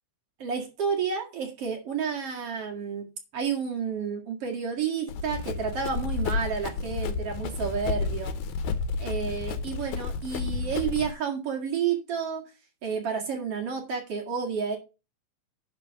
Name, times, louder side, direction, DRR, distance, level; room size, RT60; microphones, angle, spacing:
voice 1, 0.4-3.1 3.3-8.3 9.0-12.4 12.8-14.8, right 6 dB, 50° right, 1 dB, 2.8 m, -30 dB
Run, 5.1-11.1, left 5 dB, 70° left, 2.1 m, -31 dB
10.5 x 4.3 x 6.4 m, 0.29 s
omnidirectional pair, 3.8 m